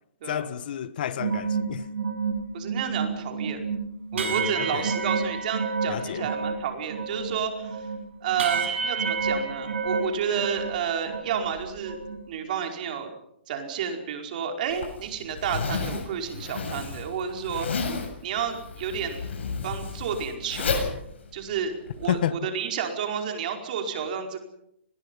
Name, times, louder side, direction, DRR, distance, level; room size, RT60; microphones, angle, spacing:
voice 1, 0.3-1.9 4.1-4.9 5.9-6.3 22.1-22.4, left 10 dB, 50° left, 1.4 m, -30 dB
sound 1, 1.2-6.6 6.9-10.8 11.1-12.2, right 5 dB, 85° right, 7.9 m, -29 dB
voice 2, 2.5-3.7 4.1-7.9 8.2-12.0 12.3-13.1 13.5-18.0 18.2-19.2 19.6-20.8 21.3-24.4, right 7 dB, 45° right, 4.9 m, -31 dB
Zipper (clothing), 14.7-22.1, left 4 dB, 75° left, 7.8 m, -32 dB
30.0 x 21.5 x 5.5 m
hypercardioid pair, 165°, 6 cm